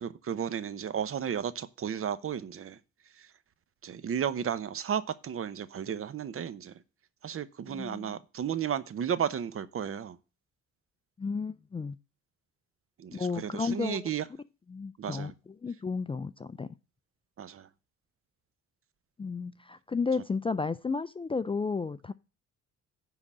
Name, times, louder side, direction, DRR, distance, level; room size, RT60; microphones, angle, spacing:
voice 1, 0.0-2.8 3.2-3.3 3.8-6.7 7.2-10.2 13.0-14.2 15.0-15.3 17.4-17.7, right 8 dB, 45° right, 0.8 m, -33 dB
voice 2, 7.7-8.1 11.2-12.0 13.1-14.1 14.7-15.3 15.6-16.7 19.2-22.1, left 4 dB, 20° left, 0.4 m, -33 dB
9.9 x 3.9 x 7.4 m
cardioid pair, 90°, 30 cm